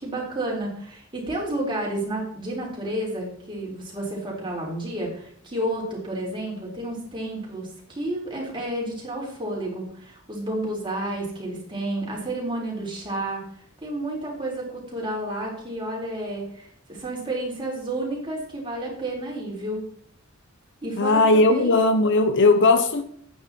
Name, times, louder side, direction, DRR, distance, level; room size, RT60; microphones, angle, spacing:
voice 1, 0.0-7.7 8.0-13.4 13.8-19.8 20.8-21.7, right 1 dB, 25° right, 4.3 m, -31 dB
voice 2, 21.0-23.0, left 2 dB, 60° left, 0.9 m, -18 dB
10.5 x 9.3 x 4.5 m
head